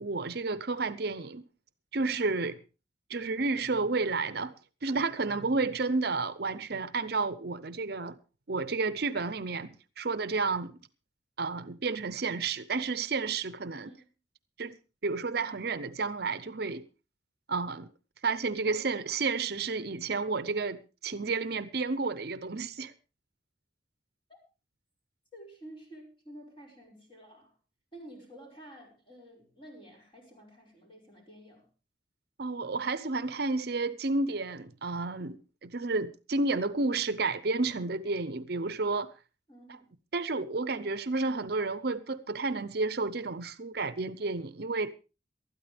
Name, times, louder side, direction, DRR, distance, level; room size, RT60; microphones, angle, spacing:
voice 1, 0.0-1.4 1.9-2.6 3.1-4.5 4.8-8.2 8.5-10.8 11.4-13.9 14.6-14.8 15.0-16.8 17.5-17.9 18.2-22.9 32.4-39.1 40.1-44.9, right 3 dB, 55° right, 0.7 m, -31 dB
voice 2, 13.7-14.1 18.7-19.0 24.3-24.4 25.3-27.6 27.9-31.7 39.5-39.9, right 1 dB, 25° left, 5.4 m, -51 dB
19.0 x 13.0 x 3.4 m
head